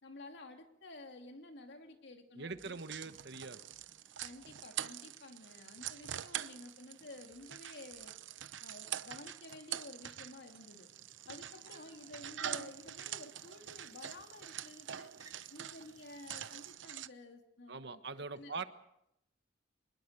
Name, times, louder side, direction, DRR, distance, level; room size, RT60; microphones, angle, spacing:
voice 1, 0.0-2.7 3.1-3.2 4.2-8.1 8.6-10.9 11.3-15.1 15.5-18.7, left 2 dB, 65° left, 5 dB, 2.7 m, -52 dB
voice 2, 2.3-3.6 17.7-18.6, right 4 dB, 65° right, 10 dB, 1.4 m, -43 dB
sound 1, 2.5-2.7 3.1-3.3 3.7-3.9 4.1-4.5 7.3-7.5 7.9-8.2, equal, 40° left, 4.2 m, -72 dB
sound 2, 2.6-17.1, right 10 dB, 85° right, 0.8 m, -45 dB
sound 3, 3.0-16.7, right 3 dB, 20° right, 4.4 m, -66 dB
26.0 x 20.5 x 6.7 m, 0.80 s
head